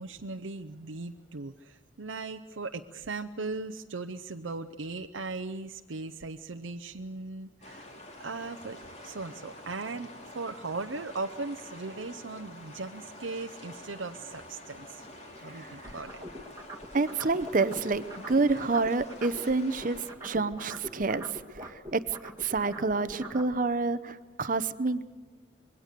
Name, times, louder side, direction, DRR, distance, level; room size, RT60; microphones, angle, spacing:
voice 1, 0.0-7.9 8.2-8.8 9.0-15.0 15.4-16.2, right 3 dB, 85° right, 5 dB, 0.7 m, -38 dB
sound 1, 7.6-20.1, left 1 dB, 35° left, 2.8 m, -47 dB
sound 2, 15.8-19.5 19.8-23.5, equal, 20° right, 1.9 m, -42 dB
voice 2, 16.9-21.3 21.6-25.1, right 3 dB, 45° right, 13 dB, 0.7 m, -28 dB
26.5 x 22.0 x 6.7 m, 1.4 s
head